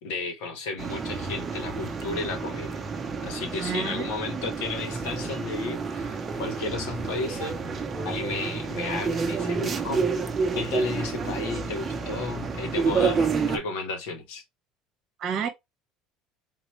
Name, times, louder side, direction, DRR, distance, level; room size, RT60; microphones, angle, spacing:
voice 1, 0.0-2.7 3.2-7.5 8.0-10.2 10.5-14.4, left 3 dB, 90° left, 1.3 m, -33 dB
sound 1, 0.8-13.6, right 5 dB, 20° right, 0.6 m, -29 dB
voice 2, 3.6-4.5 15.2-15.5, right 7 dB, 35° right, 1.0 m, -31 dB
3.9 x 2.9 x 3.0 m
cardioid pair, 165°, 0 cm